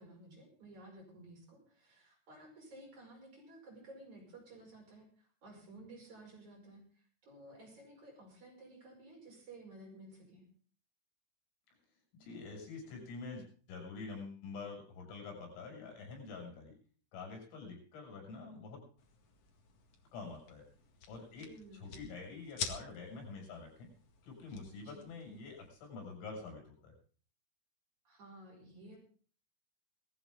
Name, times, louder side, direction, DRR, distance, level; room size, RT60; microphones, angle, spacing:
voice 1, 0.0-10.5 21.4-21.9 24.8-25.1 28.0-29.0, right 2 dB, 35° right, 0 dB, 6.6 m, -55 dB
voice 2, 12.2-16.7 17.1-18.8 20.1-20.6 21.1-21.5 21.7-23.9 24.2-26.9, left 4 dB, 80° left, 1 dB, 9.1 m, -47 dB
sound 1, 19.0-25.7, left 5 dB, 55° left, 1.8 m, -48 dB
19.0 x 15.0 x 3.8 m, 0.43 s
omnidirectional pair, 5.8 m